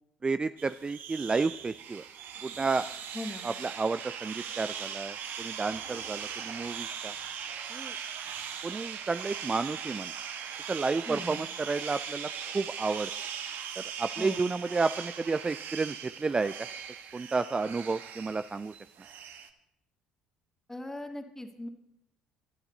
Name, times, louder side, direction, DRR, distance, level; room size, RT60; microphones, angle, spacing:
voice 1, 0.2-2.0 2.4-2.9 3.4-7.1 7.7-7.9 8.6-10.1 10.7-13.1 13.8-16.5 17.1-18.7, right 4 dB, 25° right, 13 dB, 0.5 m, -31 dB
sound 1, 0.6-19.5, right 8 dB, 55° right, 1.6 m, -40 dB
voice 2, 3.1-3.5 11.1-11.4 14.2-14.5 20.7-21.7, left 1 dB, 10° left, 5 dB, 2.4 m, -39 dB
25.0 x 11.5 x 4.0 m, 0.81 s
hypercardioid pair, 55°, 4 cm